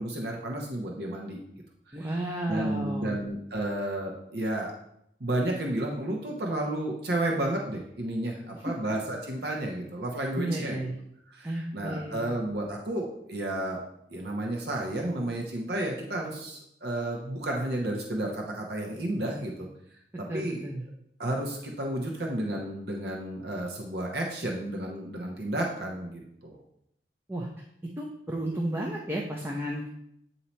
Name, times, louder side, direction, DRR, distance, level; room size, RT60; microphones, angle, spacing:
voice 1, 0.0-1.4 1.9-2.1 2.5-4.7 5.2-10.9 11.3-13.8 14.1-19.7 20.2-20.7 21.2-26.6, right 1 dB, 60° right, 0 dB, 0.9 m, -32 dB
voice 2, 1.9-3.2 8.5-8.7 10.4-10.9 11.4-12.4 20.3-20.8 27.3-27.5 28.0-29.9, right 1 dB, 15° right, -1 dB, 0.5 m, -33 dB
8.4 x 2.8 x 4.2 m, 0.75 s
head